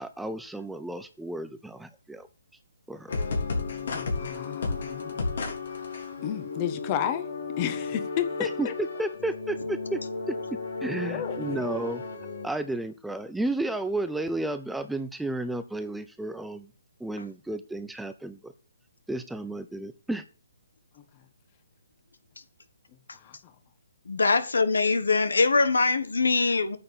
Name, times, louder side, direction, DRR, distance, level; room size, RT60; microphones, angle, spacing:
voice 1, 0.0-2.3 2.9-3.1 8.4-10.0 10.3-10.4 10.8-12.0 12.4-16.7 17.0-18.5 19.1-20.2, right 2 dB, 5° right, 0.5 m, -32 dB
sound 1, 3.1-12.5, left 3 dB, 65° left, 3.7 m, -33 dB
voice 2, 3.9-5.2 6.2-7.3 7.6-8.7 10.9-11.6 23.2-23.4, left 10 dB, 30° left, 1.4 m, -32 dB
voice 3, 24.1-26.8, left 4 dB, 85° left, 1.6 m, -23 dB
9.7 x 6.7 x 6.8 m
hypercardioid pair, 155°, 0 cm